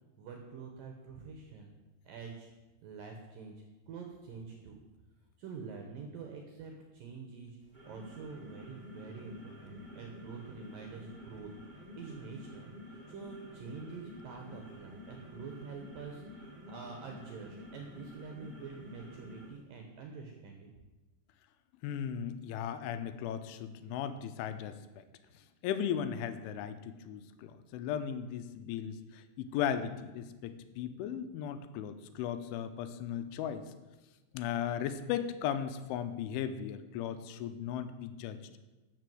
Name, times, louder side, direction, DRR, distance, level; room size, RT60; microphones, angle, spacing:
voice 1, 0.2-1.8 2.0-2.5 2.8-3.5 3.9-4.8 5.4-7.6 7.8-20.7, right 5 dB, 70° right, 3 dB, 2.2 m, -46 dB
sound 1, 7.6-19.6, left 1 dB, 35° right, 0.7 m, -50 dB
voice 2, 21.8-25.0 25.6-33.6 34.3-38.4, left 9 dB, 85° left, 10 dB, 3.2 m, -36 dB
13.0 x 6.0 x 7.7 m, 1.1 s
omnidirectional pair, 5.5 m